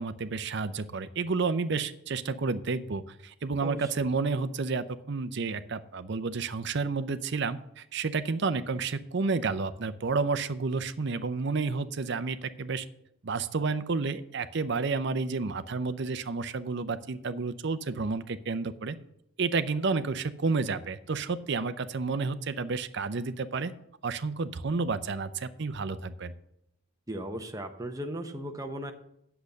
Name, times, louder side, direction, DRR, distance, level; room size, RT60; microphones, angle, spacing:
voice 1, 0.0-12.9 13.2-19.0 19.4-23.7 24.0-26.3, right 4 dB, 55° right, 11 dB, 0.6 m, -30 dB
voice 2, 3.6-4.1 27.1-28.9, right 1 dB, 15° right, 4 dB, 0.8 m, -37 dB
8.4 x 6.9 x 6.5 m, 0.79 s
head